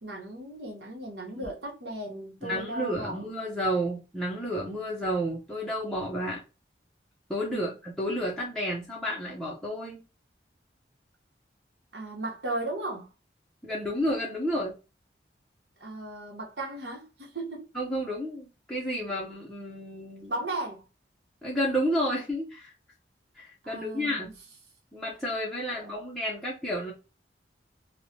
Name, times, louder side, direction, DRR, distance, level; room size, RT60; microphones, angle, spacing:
voice 1, 0.0-3.2 7.5-7.7 11.9-13.1 15.8-17.7 20.3-20.8 23.6-24.3 25.7-25.9, right 2 dB, 75° right, 0.9 m, -36 dB
voice 2, 2.4-6.4 7.3-10.0 13.6-14.7 17.7-20.3 21.4-22.7 23.4-24.3 24.9-26.9, equal, 5° left, 0.5 m, -31 dB
3.1 x 2.1 x 2.6 m
head